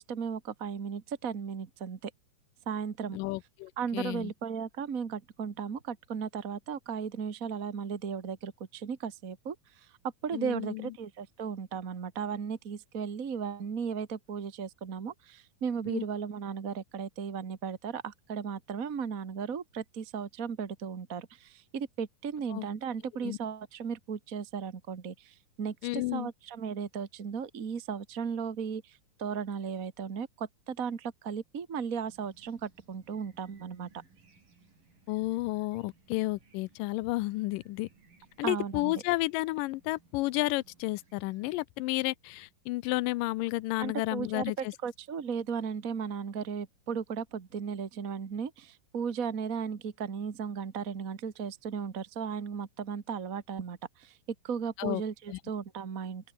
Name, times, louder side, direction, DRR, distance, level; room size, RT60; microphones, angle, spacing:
voice 1, 0.0-2.1 2.7-3.2 3.8-9.9 10.2-33.9 38.4-38.9 43.8-54.2 54.4-56.3, right 6 dB, 45° right, 1.0 m, -36 dB
voice 2, 3.1-4.3 10.3-10.9 15.9-16.0 22.5-22.6 23.2-23.4 25.8-26.3 35.1-37.9 38.4-44.7 54.8-55.0 55.3-55.4, left 20 dB, 80° left, 2.2 m, -32 dB
sound 1, 32.0-41.7, right 4 dB, 75° right, 8.6 m, -63 dB
open air
omnidirectional pair, 3.9 m